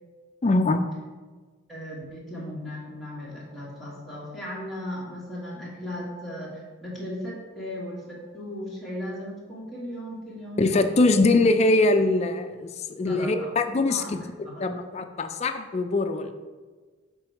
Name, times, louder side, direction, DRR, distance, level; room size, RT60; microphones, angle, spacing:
voice 1, 0.4-0.8 10.6-14.2 14.6-16.3, left 2 dB, 30° left, 8 dB, 0.3 m, -22 dB
voice 2, 1.7-10.6 10.9-11.4 13.1-13.5 13.9-14.7, equal, ahead, -7 dB, 1.4 m, -37 dB
6.0 x 3.8 x 4.5 m, 1.4 s
head